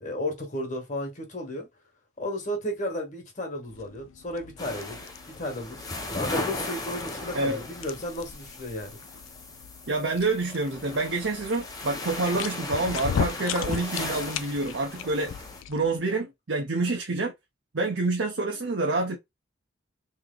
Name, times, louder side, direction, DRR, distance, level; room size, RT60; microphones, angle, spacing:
voice 1, 0.0-1.7 2.2-5.8 6.1-9.0, left 1 dB, 35° left, 1.3 m, -33 dB
sound 1, 3.7-16.0, left 7 dB, 85° left, 0.4 m, -38 dB
sound 2, 4.6-15.6, left 2 dB, 20° left, 0.7 m, -37 dB
voice 2, 7.3-7.6 9.9-15.3 15.7-17.3 17.7-19.2, right 3 dB, 65° right, 0.7 m, -27 dB
3.2 x 2.9 x 3.8 m
head